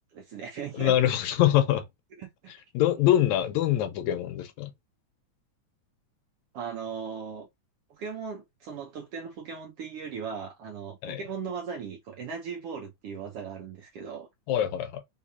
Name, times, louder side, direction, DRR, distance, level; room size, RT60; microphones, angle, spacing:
voice 1, 0.0-1.0 2.2-2.5 6.5-7.5 7.9-14.3, right 6 dB, 70° right, 1.4 m, -38 dB
voice 2, 0.7-1.9 2.7-4.7 11.0-11.2 14.5-15.0, left 12 dB, 75° left, 2.0 m, -24 dB
4.6 x 3.6 x 2.7 m
omnidirectional pair, 3.5 m